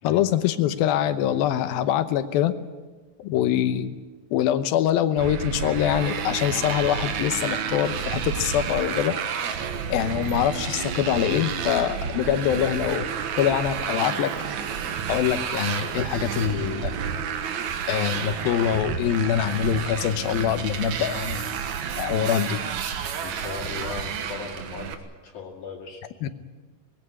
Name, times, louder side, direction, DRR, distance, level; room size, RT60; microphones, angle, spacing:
voice 1, 0.0-2.5 3.2-4.0 4.3-9.1 9.9-13.1 13.4-14.3 15.1-16.9 17.9-21.5 22.0-22.6 26.2-26.3, left 10 dB, 80° left, 11 dB, 2.8 m, -24 dB
Motorcycle, 5.2-24.9, right 7 dB, 60° right, 2.4 m, -30 dB
voice 2, 23.2-25.0 25.2-26.0, left 5 dB, 60° left, -2 dB, 3.6 m, -37 dB
21.5 x 16.5 x 10.0 m, 1.3 s
omnidirectional pair, 4.3 m